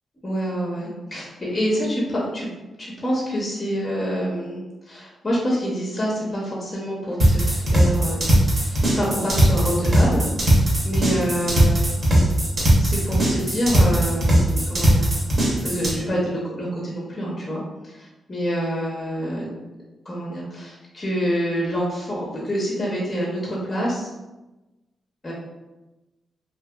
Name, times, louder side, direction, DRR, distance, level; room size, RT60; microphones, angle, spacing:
voice 1, 0.2-2.5 2.8-8.2 8.5-12.0 12.8-15.1 15.6-19.5 20.0-24.1 25.2-25.3, equal, 25° left, -5 dB, 0.6 m, -27 dB
sound 1, 7.2-15.9, right 1 dB, 40° right, 0.8 m, -18 dB
2.7 x 2.6 x 2.2 m, 1.1 s
cardioid pair, 120°, 0 cm